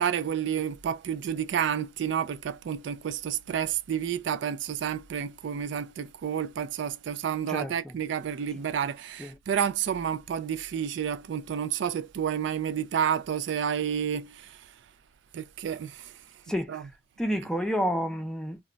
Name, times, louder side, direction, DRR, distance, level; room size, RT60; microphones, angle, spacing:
voice 1, 0.0-14.7 15.3-16.2 16.7-16.9, right 8 dB, 65° right, 0.3 m, -30 dB
voice 2, 7.5-8.0 9.2-9.4 16.5-16.8 17.2-18.6, equal, 5° left, 0.5 m, -30 dB
2.2 x 2.1 x 3.8 m
head